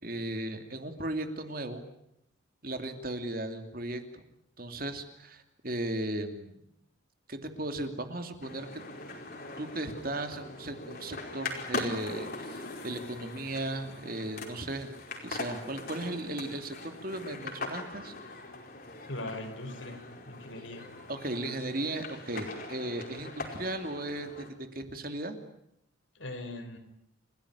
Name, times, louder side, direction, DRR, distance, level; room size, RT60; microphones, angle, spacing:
voice 1, 0.0-1.8 2.6-4.2 4.6-6.6 7.3-8.8 9.6-14.9 15.2-18.1 21.1-25.4, right 1 dB, 45° right, 7 dB, 2.8 m, -36 dB
sound 1, 8.4-24.5, left 3 dB, 50° left, 5.0 m, -41 dB
voice 2, 19.1-20.9 26.2-26.8, left 1 dB, 80° left, 6 dB, 5.2 m, -40 dB
30.0 x 16.5 x 10.0 m, 0.77 s
head